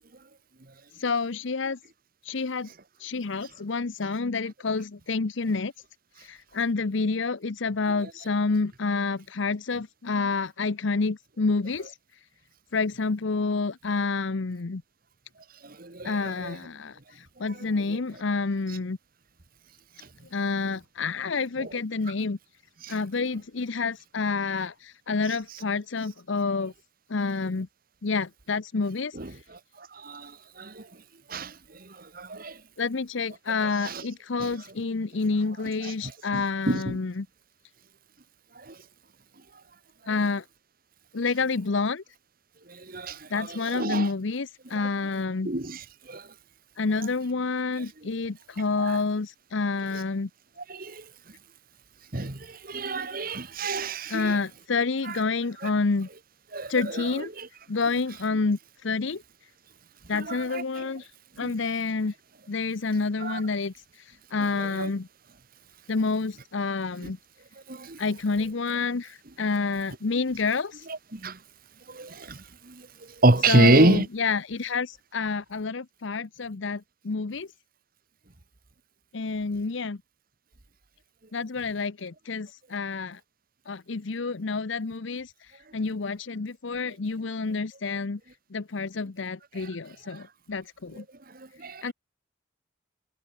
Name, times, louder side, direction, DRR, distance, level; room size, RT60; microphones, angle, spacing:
voice 1, 0.9-1.8 2.2-2.7 3.0-5.7 6.2-12.0 12.7-14.8 16.0-19.0 20.3-22.4 22.9-26.7 27.1-27.7 28.0-29.4 32.8-37.3 40.1-40.4 41.1-42.0 43.3-45.5 46.8-50.3 54.1-56.1 56.7-57.3 57.7-59.2 60.1-61.1 61.4-62.1 62.5-65.1 65.9-67.2 68.0-70.9 73.5-77.5 79.1-80.0 81.3-83.2 83.7-88.2 88.5-91.0 91.8-91.9, left 4 dB, 65° left, 0.7 m, -28 dB
voice 2, 15.6-16.6 17.4-17.7 20.0-20.1 21.6-21.7 22.8-22.9 29.1-30.9 31.3-32.6 33.6-34.0 34.4-34.5 35.8-37.0 38.5-38.8 42.7-44.1 44.7-44.9 45.4-46.3 48.8-49.0 50.7-51.1 52.1-54.4 55.0-55.2 55.6-55.7 56.5-57.5 60.1-60.9 61.4-61.5 63.2-63.4 64.5-64.9 67.0-67.1 67.7-68.0 70.9-71.4 71.9-74.1 89.5-89.7 91.3-91.9, right 2 dB, 45° right, 1.7 m, -28 dB
head